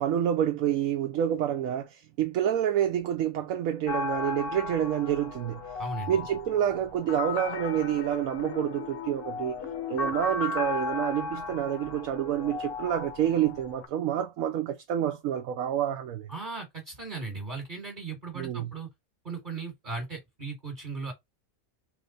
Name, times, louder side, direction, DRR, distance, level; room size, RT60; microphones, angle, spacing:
voice 1, 0.0-5.6 6.1-9.5 9.9-16.3 18.3-18.7, right 10 dB, 75° right, 1.0 m, -28 dB
sound 1, 3.9-13.9, left 4 dB, 55° left, 0.8 m, -35 dB
voice 2, 5.8-6.1 16.3-18.9 19.2-21.1, right 4 dB, 35° right, 1.3 m, -37 dB
3.4 x 3.2 x 3.8 m
omnidirectional pair, 1.5 m